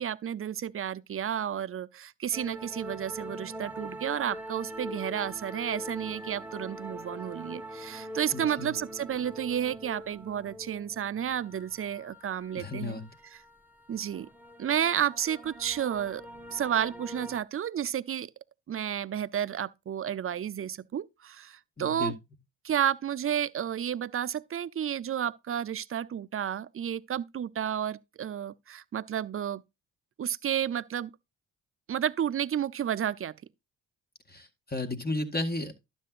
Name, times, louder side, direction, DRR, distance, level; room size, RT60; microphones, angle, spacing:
voice 1, 0.0-13.0 13.9-14.3 14.6-16.3 16.5-18.3 18.7-22.1 22.6-29.6 30.2-31.1 31.9-33.4, right 9 dB, 30° right, 0.5 m, -31 dB
sound 1, 2.3-17.4, equal, 5° right, 1.0 m, -43 dB
voice 2, 8.3-8.7 12.6-13.0 21.8-22.1 34.3-35.7, left 2 dB, 20° left, 1.8 m, -33 dB
12.0 x 7.7 x 2.5 m
hypercardioid pair, 45°, 44 cm